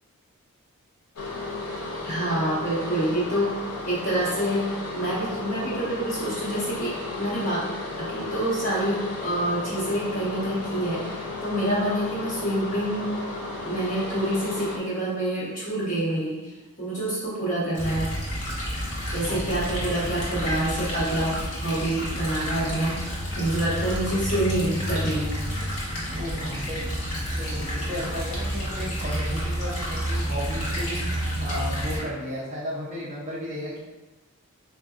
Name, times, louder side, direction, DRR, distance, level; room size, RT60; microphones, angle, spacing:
sound 1, 1.2-14.8, left 2 dB, 85° left, 0.6 m, -34 dB
voice 1, 2.0-3.6 3.8-4.7 4.9-7.6 8.0-13.1 13.6-16.4 16.8-18.1 19.1-22.9 23.4-25.3, right 1 dB, 35° left, -8 dB, 1.3 m, -27 dB
sound 2, 17.7-32.0, equal, 70° left, 1.1 m, -30 dB
voice 2, 26.1-26.9 27.4-33.8, equal, 30° right, -6 dB, 0.5 m, -34 dB
3.9 x 2.5 x 2.4 m, 1.1 s
head